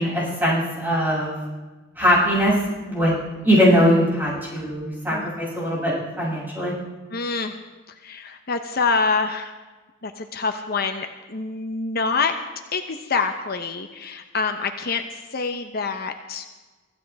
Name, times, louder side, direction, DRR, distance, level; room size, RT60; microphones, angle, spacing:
voice 1, 0.0-1.4 2.0-2.5 2.9-3.1 3.4-6.7, equal, 10° right, -6 dB, 7.3 m, -21 dB
voice 2, 7.1-7.5 7.9-9.5 10.0-12.3 12.7-16.5, left 4 dB, 55° left, 6 dB, 1.0 m, -26 dB
24.5 x 15.0 x 3.6 m, 1.3 s
head